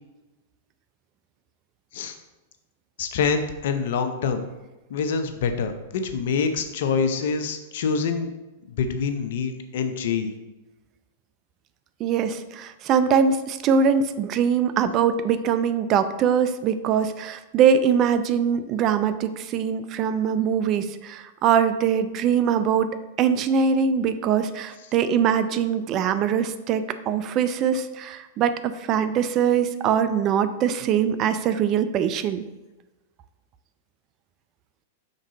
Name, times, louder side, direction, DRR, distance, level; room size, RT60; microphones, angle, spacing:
voice 1, 3.0-4.4 4.9-8.3 8.7-10.3, left 5 dB, 65° left, 8 dB, 0.7 m, -26 dB
voice 2, 12.0-22.9 23.2-32.4, right 7 dB, 40° right, 11 dB, 0.4 m, -22 dB
5.3 x 3.7 x 5.0 m, 1.1 s
hypercardioid pair, 105°, 0 cm